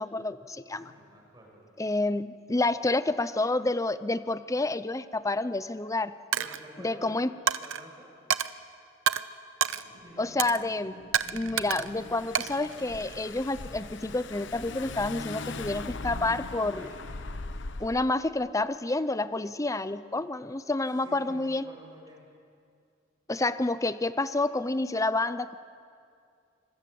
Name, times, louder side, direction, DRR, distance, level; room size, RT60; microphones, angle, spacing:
voice 1, 0.0-0.9 1.8-6.1 6.8-7.3 10.2-11.0 11.3-16.9 17.8-21.6 23.3-25.6, left 2 dB, 15° left, 14 dB, 0.7 m, -29 dB
voice 2, 0.7-1.6 6.3-7.2 7.5-8.1 10.0-10.6 16.7-17.2 21.0-22.2, right 1 dB, 20° right, -1 dB, 6.0 m, -50 dB
Coin (dropping), 6.3-6.6 7.5-7.8 8.3-8.5 9.1-9.2 9.6-9.8 10.4-10.6 11.1-11.9 12.4-13.3, right 8 dB, 80° right, 0.7 m, -28 dB
sound 1, 9.6-17.0 17.6-17.7, right 1 dB, 65° right, 3.9 m, -56 dB
Car / Engine, 11.1-18.1, left 3 dB, 65° left, 0.9 m, -40 dB
26.0 x 23.0 x 7.8 m, 2.4 s
head